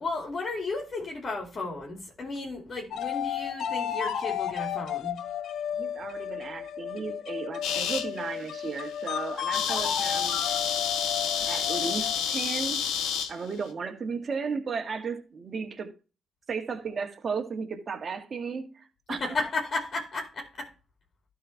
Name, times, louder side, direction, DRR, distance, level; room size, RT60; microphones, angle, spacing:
voice 1, 0.0-5.2 19.1-20.7, left 3 dB, 40° left, 2.5 m, -34 dB
sound 1, 2.9-12.3, left 9 dB, 70° left, 0.6 m, -33 dB
voice 2, 5.7-10.4 11.5-12.9 13.3-15.9 16.5-19.2, right 5 dB, 45° right, 1.8 m, -34 dB
sound 2, 7.6-8.1 8.6-8.8 9.1-9.2 9.4-13.3, left 8 dB, 90° left, 1.3 m, -29 dB
12.5 x 4.3 x 4.5 m
cardioid pair, 90°, 0 cm